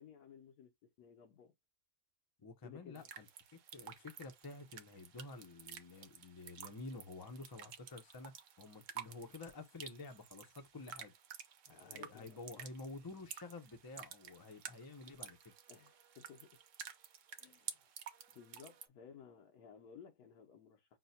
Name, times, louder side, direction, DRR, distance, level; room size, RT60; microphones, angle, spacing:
voice 1, 0.0-1.5 2.6-3.1 11.7-12.6 15.7-16.6 17.3-17.9 18.3-21.0, left 7 dB, 90° left, 1.3 m, -58 dB
voice 2, 2.4-3.3 3.5-11.1 11.7-15.5, left 3 dB, 35° left, 0.3 m, -50 dB
sound 1, 3.0-18.9, right 8 dB, 65° right, 0.9 m, -52 dB
5.9 x 2.2 x 2.6 m
omnidirectional pair, 1.6 m